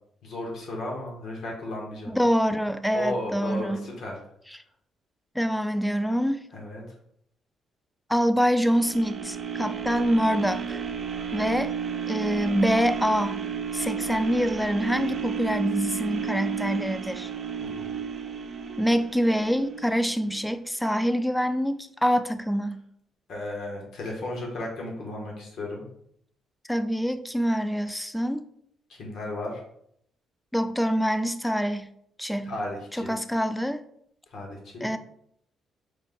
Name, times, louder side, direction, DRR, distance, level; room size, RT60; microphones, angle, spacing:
voice 1, 0.2-2.1 2.9-4.2 6.5-6.8 17.6-18.0 23.3-25.9 28.9-29.6 32.4-33.1 34.3-34.9, left 1 dB, 70° left, -1 dB, 1.2 m, -34 dB
voice 2, 2.1-3.8 4.5-4.6 5.4-6.5 8.1-10.8 11.3-11.7 12.1-13.4 13.7-17.3 18.8-22.8 26.7-28.5 30.5-31.9 32.2-32.5 32.9-33.8 34.8-35.0, equal, 5° left, 11 dB, 0.3 m, -25 dB
sound 1, 8.4-20.5 21.0-21.1, right 7 dB, 50° right, 0.6 m, -33 dB
5.1 x 2.1 x 3.7 m, 0.69 s
cardioid pair, 90°, 0 cm